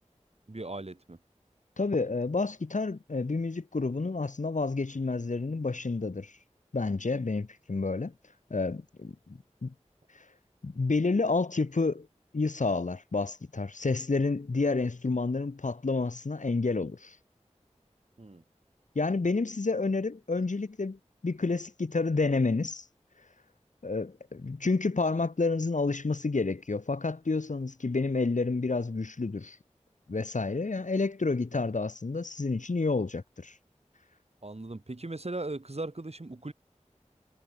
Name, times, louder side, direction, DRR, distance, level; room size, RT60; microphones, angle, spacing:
voice 1, 0.5-1.2 18.2-18.4 34.4-36.5, right 2 dB, 55° right, 5.9 m, -38 dB
voice 2, 1.8-6.3 6.7-8.1 8.5-9.7 10.6-12.1 12.3-17.2 19.0-22.9 23.8-29.6 30.1-33.5, left 3 dB, 85° left, 2.0 m, -29 dB
wide cardioid pair, 45°, 12 cm